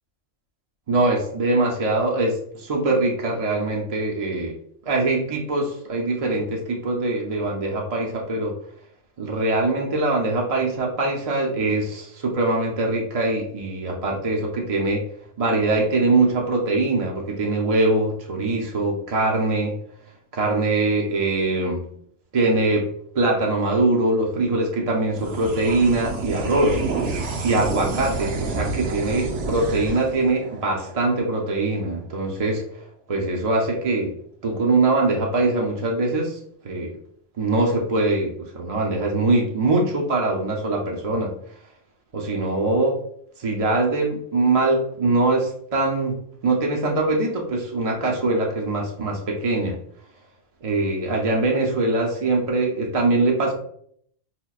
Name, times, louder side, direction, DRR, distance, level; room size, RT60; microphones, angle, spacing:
voice 1, 0.9-4.5 4.9-8.5 9.2-15.0 15.4-19.8 20.3-21.9 22.3-22.9 23.2-27.1 27.4-32.6 33.1-34.1 34.4-36.4 36.6-37.0 37.4-41.3 42.1-43.0 43.4-49.8 50.6-53.5, right 2 dB, 45° right, -1 dB, 0.5 m, -22 dB
sound 1, 25.1-31.9, right 3 dB, 75° right, 1.0 m, -30 dB
5.7 x 2.1 x 2.3 m, 0.65 s
omnidirectional pair, 1.2 m